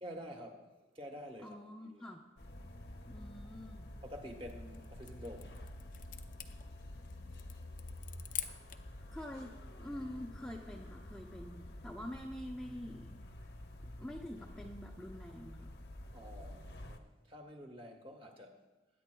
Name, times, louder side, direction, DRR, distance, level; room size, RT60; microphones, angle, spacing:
voice 1, 0.0-0.7 0.9-1.6 1.8-2.0 4.0-5.7 16.1-18.6, equal, 30° right, 3 dB, 1.3 m, -48 dB
voice 2, 1.4-2.2 3.1-3.8 9.1-9.5 9.8-13.2 14.0-15.7, left 1 dB, 5° left, -1 dB, 0.6 m, -46 dB
sound 1, 2.4-17.0, left 1 dB, 65° left, 0.9 m, -49 dB
sound 2, 4.4-9.0, left 11 dB, 45° left, 0.6 m, -47 dB
21.0 x 9.9 x 2.3 m, 1.2 s
head